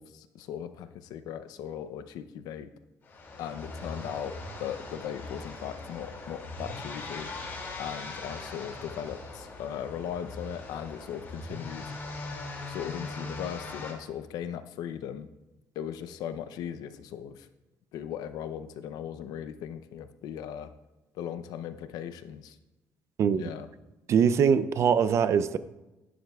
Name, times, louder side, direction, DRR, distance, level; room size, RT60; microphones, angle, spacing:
voice 1, 0.0-2.7 3.4-7.3 7.8-11.9 12.7-15.3 15.7-17.5 17.9-20.7 21.1-22.6 23.3-23.7, left 9 dB, 85° left, 11 dB, 0.6 m, -38 dB
sound 1, 3.0-13.9, left 2 dB, 35° left, 2.4 m, -40 dB
voice 2, 23.2-23.5 24.1-25.6, right 7 dB, 50° right, 13 dB, 0.5 m, -23 dB
11.5 x 11.0 x 2.4 m, 1.0 s
cardioid pair, 145°, 6 cm